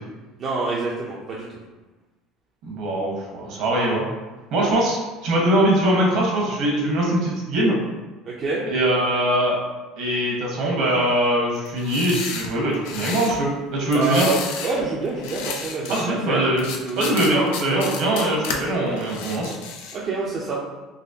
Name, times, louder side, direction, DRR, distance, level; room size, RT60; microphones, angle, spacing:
voice 1, 0.4-1.6 5.4-5.5 8.2-8.6 13.9-16.5 16.8-17.1 17.7-17.8 19.9-20.6, right 3 dB, 45° right, -5 dB, 0.6 m, -27 dB
voice 2, 2.6-4.0 4.5-7.8 8.6-9.6 10.0-14.3 15.9-16.7 17.0-19.5, right 1 dB, 65° right, -2 dB, 1.3 m, -22 dB
sound 1, 11.7-13.4 13.9-14.8 15.1-16.1 16.6-18.6 19.0-20.0, left 6 dB, 85° left, 0.5 m, -32 dB
4.0 x 2.9 x 2.8 m, 1.2 s
supercardioid pair, 110°, 0 cm